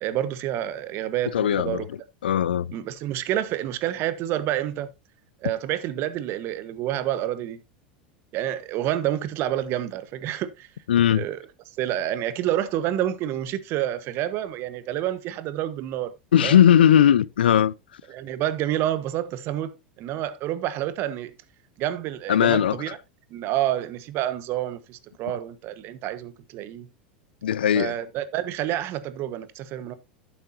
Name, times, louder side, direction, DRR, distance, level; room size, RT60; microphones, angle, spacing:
voice 1, 0.0-1.9 2.7-4.9 5.4-7.6 8.3-10.7 11.1-11.4 11.8-16.1 16.4-16.6 18.1-21.3 21.8-23.0 23.3-26.9 27.7-30.0, right 12 dB, 50° right, 1.3 m, -28 dB
voice 2, 1.3-1.8 2.2-2.7 10.9-11.2 16.3-17.7 22.3-22.8 27.4-27.9, left 10 dB, 85° left, 0.5 m, -18 dB
11.0 x 9.0 x 2.8 m
hypercardioid pair, 95°, 5 cm